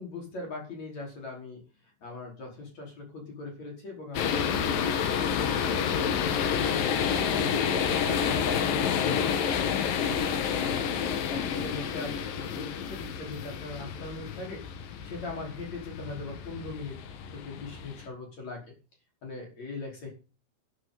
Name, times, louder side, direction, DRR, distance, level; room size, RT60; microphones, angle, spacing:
voice 1, 0.0-6.1 7.0-10.9 11.3-14.6 15.0-17.0 17.3-18.6 19.2-20.1, left 3 dB, 45° left, 0 dB, 6.1 m, -40 dB
sound 1, 4.2-18.1, left 7 dB, 70° left, 3.2 m, -29 dB
15.5 x 11.0 x 4.2 m, 0.34 s
omnidirectional pair, 4.3 m